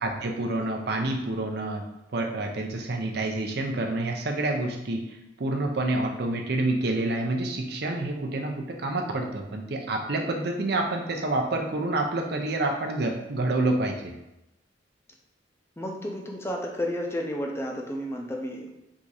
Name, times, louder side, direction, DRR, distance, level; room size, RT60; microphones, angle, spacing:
voice 1, 0.0-1.8 2.1-14.1, right 2 dB, 55° right, 2 dB, 0.6 m, -28 dB
voice 2, 15.8-18.7, equal, 15° left, 1 dB, 0.5 m, -32 dB
3.6 x 2.7 x 4.7 m, 0.89 s
head